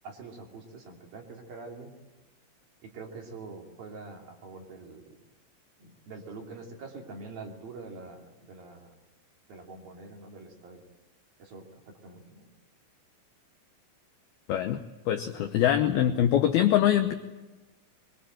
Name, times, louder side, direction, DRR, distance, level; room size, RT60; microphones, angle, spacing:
voice 1, 0.0-1.9 2.8-5.1 5.8-8.9 9.5-10.8 11.4-12.5 15.3-15.5, right 3 dB, 50° right, 1 dB, 4.2 m, -45 dB
voice 2, 15.1-17.1, left 11 dB, 90° left, 7 dB, 2.2 m, -23 dB
25.0 x 23.0 x 9.0 m, 1.1 s
omnidirectional pair, 5.8 m